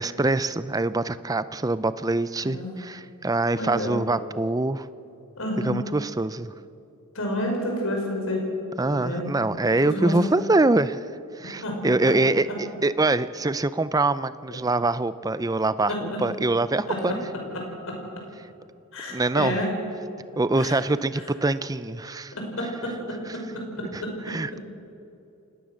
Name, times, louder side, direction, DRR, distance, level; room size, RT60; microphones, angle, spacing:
voice 1, 0.0-4.9 5.6-6.5 8.8-11.1 11.3-15.9 16.2-17.2 19.1-19.6 20.4-22.3 23.9-24.6, right 2 dB, 15° right, 14 dB, 0.5 m, -24 dB
voice 2, 2.4-2.8 3.5-4.0 5.4-5.8 7.1-8.4 8.9-9.3 9.8-10.1 11.4-11.8 12.0-12.1 15.9-16.2 16.9-17.2 17.5-18.0 18.9-19.7 20.6-20.8 22.3-24.1, left 1 dB, 65° left, 1 dB, 5.6 m, -30 dB
29.0 x 18.0 x 6.4 m, 2.7 s
head